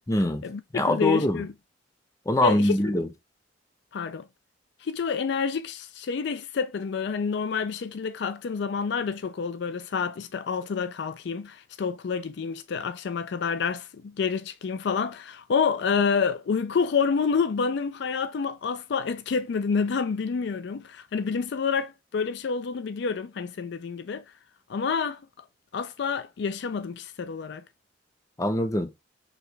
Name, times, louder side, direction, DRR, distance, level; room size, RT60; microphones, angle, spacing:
voice 1, 0.1-0.4 0.7-1.4 2.3-3.1 28.4-28.9, left 1 dB, 20° left, 0.6 m, -23 dB
voice 2, 0.9-1.5 2.4-2.7 3.9-4.3 4.8-24.2 24.7-25.2 25.7-27.6, left 5 dB, 65° left, 0.4 m, -28 dB
4.7 x 3.3 x 3.2 m
head